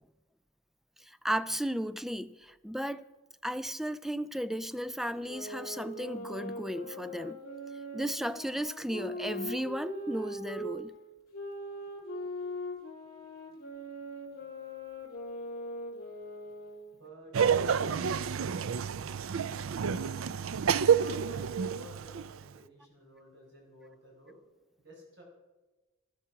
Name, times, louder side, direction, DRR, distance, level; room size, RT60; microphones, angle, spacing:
voice 1, 1.2-3.0 3.4-7.4 7.9-10.9, equal, ahead, 0.4 m, -34 dB
sound 1, 5.1-10.8 11.3-16.9, left 1 dB, 45° left, 3.6 m, -41 dB
voice 2, 16.9-17.4 20.9-24.4 24.8-25.2, right 1 dB, 60° right, 4.7 m, -53 dB
Laughter, 17.3-22.4, right 7 dB, 80° right, 0.5 m, -29 dB
13.5 x 13.0 x 5.8 m
head